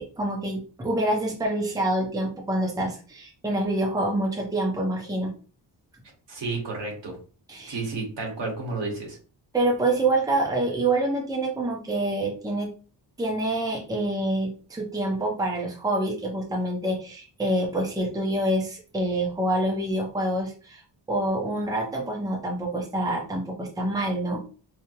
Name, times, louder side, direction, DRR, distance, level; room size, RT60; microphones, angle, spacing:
voice 1, 0.0-5.3 7.5-7.8 9.5-12.7 13.2-20.8 21.1-24.4, right 1 dB, 10° right, 0 dB, 0.6 m, -26 dB
voice 2, 6.3-7.2 7.7-9.2, right 3 dB, 75° right, -1 dB, 1.7 m, -31 dB
4.8 x 2.0 x 3.0 m, 0.37 s
wide cardioid pair, 145°, 43 cm